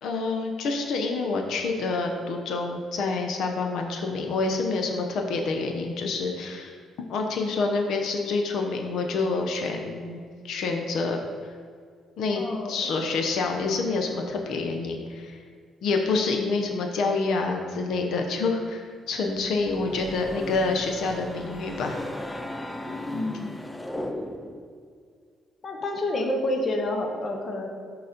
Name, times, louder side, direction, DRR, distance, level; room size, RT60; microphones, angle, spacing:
voice 1, 0.0-6.8 7.1-11.2 12.2-12.4 12.7-15.4 15.8-22.0, left 3 dB, 65° left, 3 dB, 0.7 m, -27 dB
voice 2, 12.3-12.9 23.1-23.5 25.6-27.7, left 1 dB, 35° left, 2 dB, 0.8 m, -29 dB
sound 1, 19.4-24.7, left 1 dB, 10° left, 0.4 m, -36 dB
6.7 x 4.0 x 5.1 m, 2.2 s
cardioid pair, 160°, 0 cm